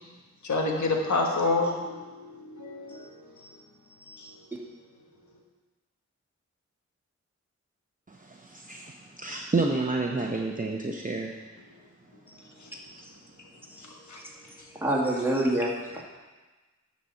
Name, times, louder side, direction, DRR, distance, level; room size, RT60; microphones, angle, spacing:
voice 1, 0.4-3.5 4.1-4.3 13.8-14.2, left 3 dB, 75° left, 1 dB, 1.4 m, -29 dB
voice 2, 8.1-11.3, right 3 dB, 30° right, 0 dB, 0.8 m, -30 dB
voice 3, 14.7-16.0, right 1 dB, 5° right, -3 dB, 2.1 m, -26 dB
9.9 x 4.2 x 7.1 m, 1.3 s
cardioid pair, 50°, 29 cm